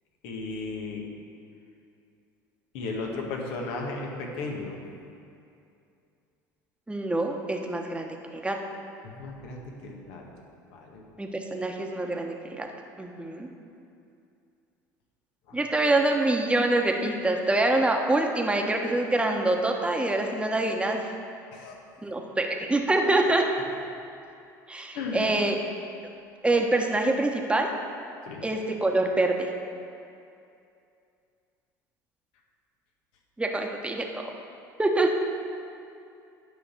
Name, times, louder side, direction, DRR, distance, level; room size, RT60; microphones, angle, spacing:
voice 1, 0.2-1.1 2.7-4.8 9.0-10.2 10.7-11.0 15.5-15.6 21.5-21.8 24.9-25.3 28.3-28.5, left 3 dB, 65° left, 1 dB, 1.7 m, -35 dB
voice 2, 6.9-8.6 11.2-12.7 13.0-13.5 15.5-21.0 22.0-23.6 24.7-25.5 26.4-27.7 28.4-29.5 33.4-34.3 34.8-35.1, right 2 dB, 10° right, 2 dB, 1.3 m, -25 dB
10.0 x 5.7 x 7.3 m, 2.6 s
hypercardioid pair, 70°, 10 cm